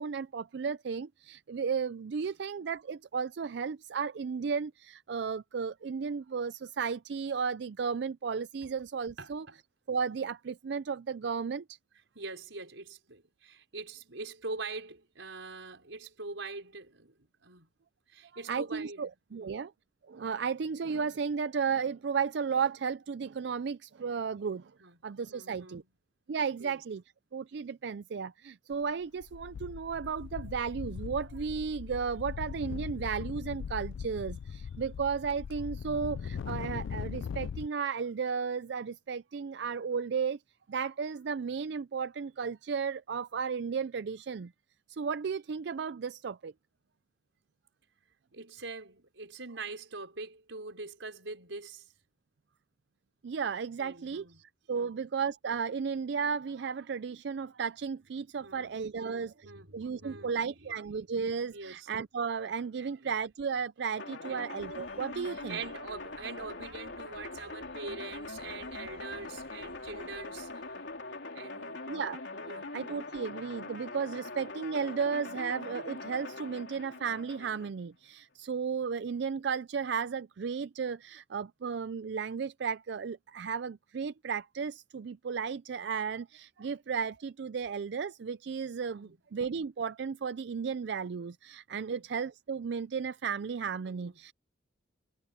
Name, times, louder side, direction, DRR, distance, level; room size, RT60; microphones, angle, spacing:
voice 1, 0.0-9.5 9.9-11.8 18.5-19.7 20.1-24.7 25.0-25.8 26.3-27.0 27.3-40.4 40.7-44.5 44.9-46.5 53.2-65.6 71.9-72.2 72.7-94.3, right 6 dB, 60° right, 0.4 m, -34 dB
voice 2, 9.2-9.6 12.2-17.7 18.1-19.5 24.8-25.0 25.3-25.9 26.6-26.8 48.3-51.9 53.8-54.4 54.7-55.0 58.4-60.5 61.5-61.9 62.8-63.1 64.2-64.5 65.3-70.8 71.3-71.9 72.3-72.7 88.9-89.2 91.8-92.0 93.9-94.2, right 3 dB, 85° right, 5.1 m, -44 dB
sound 1, 28.7-28.9 29.2-37.7, left 6 dB, 85° left, 0.3 m, -40 dB
sound 2, 64.0-77.7, left 3 dB, 70° left, 3.6 m, -42 dB
sound 3, 64.6-71.2, left 1 dB, 35° left, 6.8 m, -60 dB
head